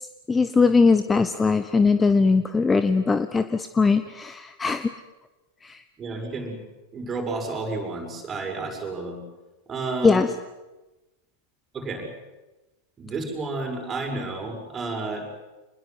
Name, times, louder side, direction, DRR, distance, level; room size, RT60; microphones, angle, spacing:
voice 1, 0.3-4.9 5.6-5.8 10.0-10.3, left 4 dB, 15° left, 11 dB, 0.9 m, -20 dB
voice 2, 6.0-6.6 6.9-9.2 9.7-10.2 11.7-12.1 13.0-15.3, right 3 dB, 20° right, 2 dB, 6.7 m, -31 dB
26.5 x 21.0 x 8.0 m, 1.1 s
figure-of-eight pair, 90°, 0 cm